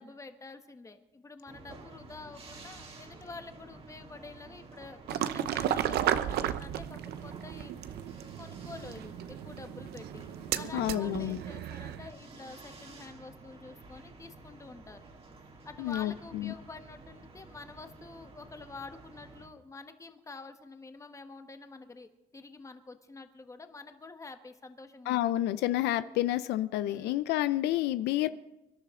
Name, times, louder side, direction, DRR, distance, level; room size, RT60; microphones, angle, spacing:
voice 1, 0.0-7.7 8.4-10.2 10.5-15.1 15.6-25.2 26.9-27.2, left 3 dB, 20° left, 7 dB, 1.3 m, -48 dB
sound 1, 1.5-19.5, right 3 dB, 35° right, 2.4 m, -51 dB
sound 2, 5.1-12.1, right 11 dB, 70° right, 0.8 m, -34 dB
voice 2, 10.7-11.4 15.8-16.5 25.1-28.3, left 14 dB, 85° left, 13 dB, 0.6 m, -29 dB
24.5 x 12.0 x 3.8 m, 0.95 s
cardioid pair, 110°, 17 cm